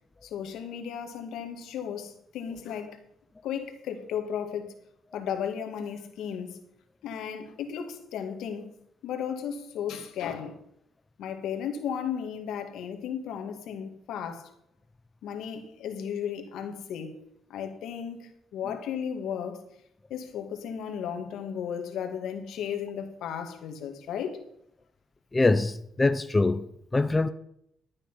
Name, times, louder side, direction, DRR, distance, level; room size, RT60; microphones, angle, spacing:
voice 1, 0.2-3.0 3.4-4.7 5.1-6.6 7.0-8.7 9.0-10.6 11.2-14.5 15.2-17.1 17.5-19.6 20.1-24.4, left 8 dB, 80° left, 1.9 m, -35 dB
voice 2, 25.3-26.7 26.9-27.3, left 2 dB, 20° left, 0.6 m, -23 dB
12.0 x 9.0 x 5.6 m
cardioid pair, 90°, 0 cm